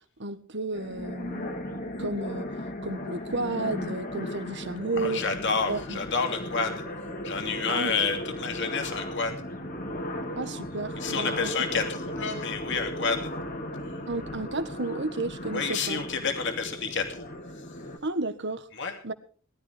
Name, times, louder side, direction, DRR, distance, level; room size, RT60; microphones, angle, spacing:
voice 1, 0.2-1.6 2.0-2.5 2.8-5.2 5.7-6.0 7.7-7.9 10.3-11.5 14.1-16.0 18.0-18.7 19.0-19.1, right 2 dB, 55° right, 11 dB, 1.7 m, -32 dB
sound 1, 0.7-18.0, left 1 dB, 40° left, 2.7 m, -36 dB
voice 2, 5.0-6.8 7.2-9.3 11.0-13.3 15.5-17.3 18.8-18.9, left 5 dB, 55° left, 5 dB, 2.9 m, -29 dB
21.0 x 13.5 x 3.5 m, 0.42 s
head